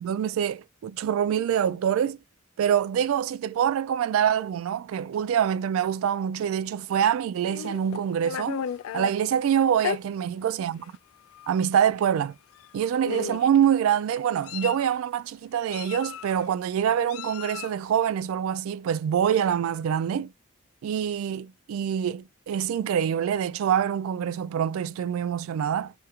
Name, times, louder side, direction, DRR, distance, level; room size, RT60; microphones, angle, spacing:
voice 1, 0.0-2.2 2.6-8.6 8.9-10.8 11.5-12.3 12.7-20.3 20.8-25.9, right 9 dB, 80° right, 0.3 m, -25 dB
Meow, 7.5-9.1 9.8-10.0 10.8-11.0 11.3-11.5 12.6-12.7 13.0-13.6 14.2-14.9 15.7-16.5 17.1-17.8, left 9 dB, 80° left, 0.3 m, -34 dB
3.4 x 2.9 x 2.4 m
head